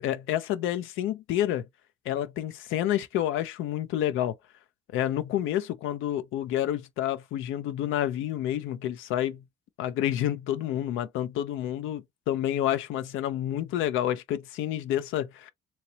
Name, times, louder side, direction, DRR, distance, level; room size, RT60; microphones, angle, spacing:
voice 1, 0.0-1.7 2.1-4.4 4.9-9.4 9.8-15.5, left 12 dB, 85° left, 0.4 m, -29 dB
2.9 x 2.9 x 2.7 m
cardioid pair, 90°, 20 cm